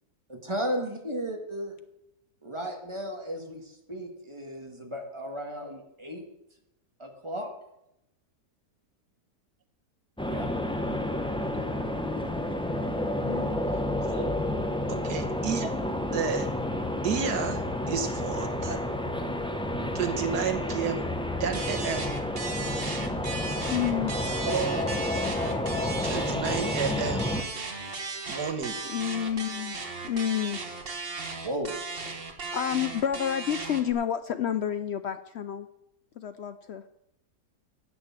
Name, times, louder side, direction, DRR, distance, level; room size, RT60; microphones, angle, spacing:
voice 1, 0.3-1.7 2.4-6.2 7.0-7.5 10.3-10.5 31.4-31.8, equal, 20° right, 2 dB, 1.8 m, -34 dB
sound 1, 10.2-27.4, left 1 dB, 5° left, 0.6 m, -30 dB
voice 2, 13.2-13.6 23.7-24.1 28.9-29.8 30.0-30.6 32.5-35.7 36.2-36.8, left 9 dB, 75° left, 10 dB, 0.6 m, -29 dB
voice 3, 14.0-14.4 14.9-15.8 16.1-16.5 17.0-18.8 19.9-21.0 21.4-22.1 24.4-25.0 26.0-27.3 28.3-28.8, right 6 dB, 85° right, 8 dB, 1.8 m, -31 dB
sound 2, 21.5-33.9, right 4 dB, 40° right, 1.4 m, -36 dB
10.0 x 8.5 x 7.3 m, 0.83 s
omnidirectional pair, 1.7 m